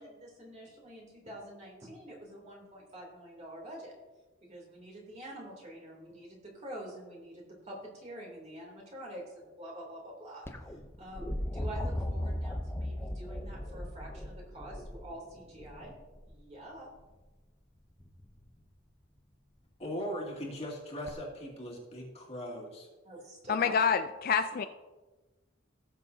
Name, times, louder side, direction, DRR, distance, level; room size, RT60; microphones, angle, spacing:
voice 1, 0.0-3.9 4.5-10.4 11.0-15.9 16.3-16.9 23.0-23.9 24.5-24.7, right 1 dB, 35° right, -3 dB, 3.1 m, -46 dB
sound 1, 10.5-16.4 18.0-18.5 21.1-21.2, left 1 dB, 10° left, 0.7 m, -37 dB
voice 2, 19.8-22.9, equal, 30° left, -2 dB, 2.4 m, -39 dB
voice 3, 23.5-24.6, left 6 dB, 45° left, 10 dB, 0.4 m, -27 dB
18.5 x 7.2 x 2.8 m, 1.2 s
head